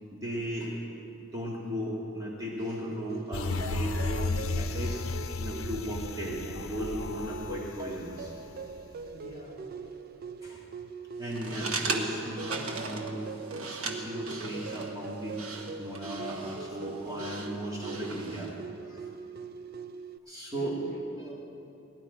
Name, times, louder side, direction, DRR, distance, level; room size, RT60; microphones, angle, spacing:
voice 1, 0.1-0.7 1.2-5.0 5.4-8.3 10.4-10.6 11.2-13.2 13.6-15.4 15.8-18.5 18.8-19.1 20.3-20.7, equal, 15° right, -5 dB, 1.8 m, -36 dB
sound 1, 2.6-20.2, right 5 dB, 45° right, 0.3 m, -42 dB
sound 2, 3.3-8.9 9.3-9.4, left 3 dB, 75° left, 0.7 m, -34 dB
voice 2, 9.1-9.7 20.5-21.3, equal, 40° left, -3 dB, 3.7 m, -43 dB
sound 3, 11.2-18.6, right 3 dB, 80° right, 1.2 m, -38 dB
17.5 x 11.5 x 4.9 m, 2.7 s
head